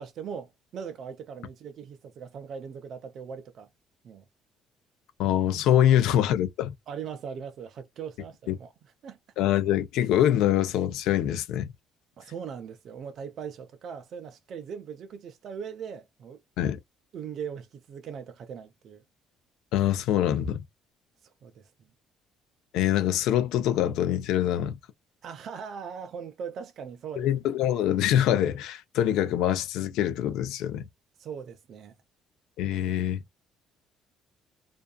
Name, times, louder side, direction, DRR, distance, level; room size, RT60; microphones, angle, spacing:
voice 1, 0.0-3.7 4.0-4.2 5.9-6.0 6.9-8.7 9.0-9.2 12.2-16.4 17.1-19.0 21.4-21.7 25.2-27.3 31.2-31.9, right 7 dB, 50° right, 0.4 m, -40 dB
voice 2, 5.2-6.7 8.5-8.6 9.4-11.7 16.6-16.8 19.7-20.6 22.7-24.8 27.2-30.9 32.6-33.2, left 11 dB, 80° left, 0.5 m, -24 dB
2.5 x 2.3 x 2.2 m
cardioid pair, 155°, 0 cm